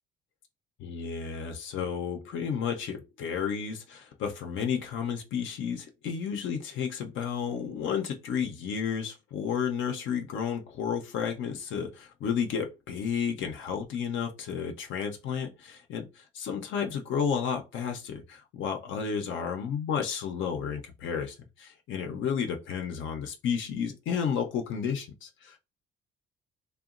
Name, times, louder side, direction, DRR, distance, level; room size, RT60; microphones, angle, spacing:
voice 1, 0.8-25.6, left 7 dB, 75° left, 0.5 m, -32 dB
2.8 x 2.2 x 2.4 m
cardioid pair, 90°, 20 cm